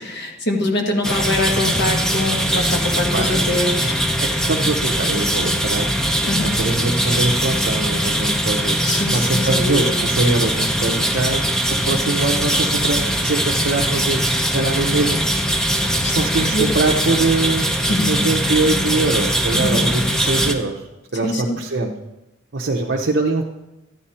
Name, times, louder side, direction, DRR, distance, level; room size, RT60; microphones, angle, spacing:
voice 1, 0.0-4.0 6.3-6.6 8.8-10.0 16.0-16.6 17.9-18.2 19.5-19.9 21.2-21.6, left 1 dB, 55° left, 2 dB, 1.5 m, -24 dB
sound 1, 1.0-20.5, equal, 5° left, 0.7 m, -21 dB
voice 2, 4.2-5.9 6.4-11.5 11.9-14.2 14.5-15.2 16.1-20.9 21.1-21.9 22.5-23.4, right 3 dB, 55° right, -1 dB, 0.8 m, -22 dB
13.0 x 9.4 x 4.3 m, 0.98 s
head